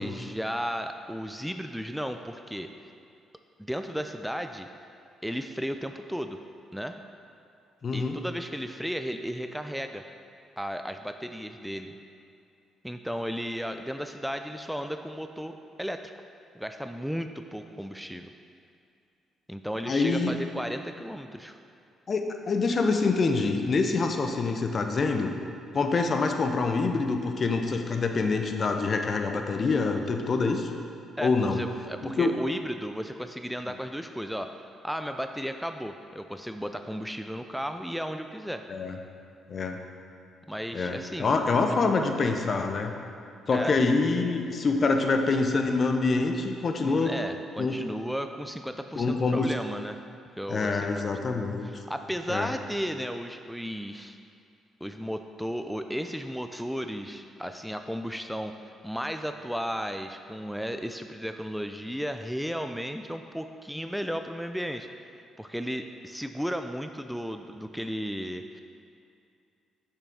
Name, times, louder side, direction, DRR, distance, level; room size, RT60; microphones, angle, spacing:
voice 1, 0.0-2.7 3.6-4.7 5.2-6.4 6.7-7.0 7.9-10.0 10.6-12.0 12.8-16.1 16.5-18.3 19.5-21.6 31.2-34.5 34.8-38.6 40.5-41.4 43.5-43.8 46.8-50.0 50.4-51.1 51.6-54.2 54.8-58.5 58.8-64.9 65.4-68.6, equal, ahead, 7 dB, 0.4 m, -34 dB
voice 2, 7.8-8.2 19.9-20.3 22.1-25.3 25.7-30.7 31.2-31.6 32.0-32.3 38.7-39.0 39.5-39.8 40.7-42.9 43.5-47.1 47.6-47.8 49.0-49.5 50.5-51.7 52.3-52.5, left 3 dB, 50° left, 5 dB, 0.6 m, -26 dB
6.8 x 5.6 x 3.7 m, 2.5 s
hypercardioid pair, 50°, 0 cm